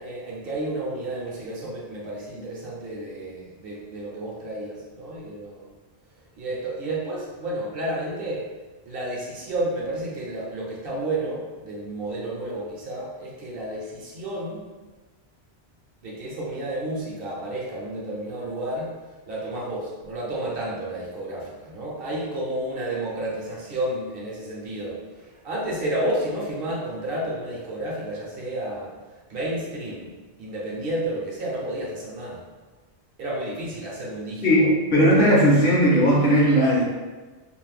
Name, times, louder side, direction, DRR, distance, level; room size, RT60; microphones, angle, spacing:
voice 1, 0.0-5.7 6.4-8.5 8.9-14.7 16.0-18.9 19.3-28.9 29.3-30.1 30.4-32.4 33.2-34.7, right 1 dB, 65° right, -5 dB, 0.8 m, -31 dB
voice 2, 34.4-36.8, equal, 55° left, -5 dB, 0.7 m, -17 dB
2.5 x 2.0 x 3.2 m, 1.3 s
omnidirectional pair, 1.1 m